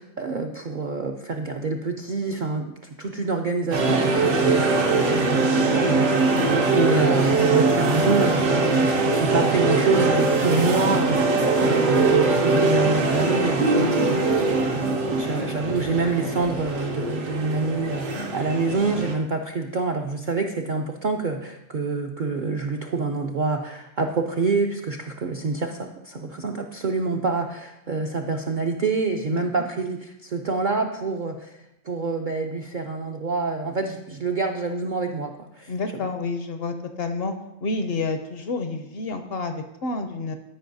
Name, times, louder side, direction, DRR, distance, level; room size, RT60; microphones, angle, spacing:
voice 1, 0.0-2.7 3.0-6.4 6.7-14.3 15.2-35.7 36.0-36.1, right 3 dB, 60° right, 3 dB, 0.5 m, -27 dB
sound 1, 3.7-19.1, right 3 dB, 85° right, 1.4 m, -21 dB
voice 2, 6.3-6.6 13.7-14.1 29.3-29.4 35.7-37.3 37.6-40.3, left 3 dB, 60° left, 7 dB, 0.7 m, -29 dB
13.5 x 5.2 x 2.6 m, 0.86 s
omnidirectional pair, 1.3 m